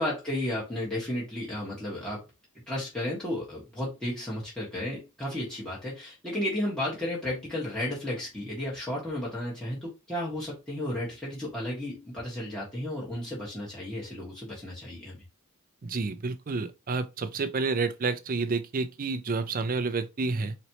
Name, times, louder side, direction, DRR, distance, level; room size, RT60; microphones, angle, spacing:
voice 1, 0.0-2.2 2.7-15.2, left 1 dB, 5° left, 1.4 m, -33 dB
voice 2, 15.8-20.5, right 4 dB, 40° right, 0.5 m, -29 dB
4.1 x 3.1 x 2.9 m
head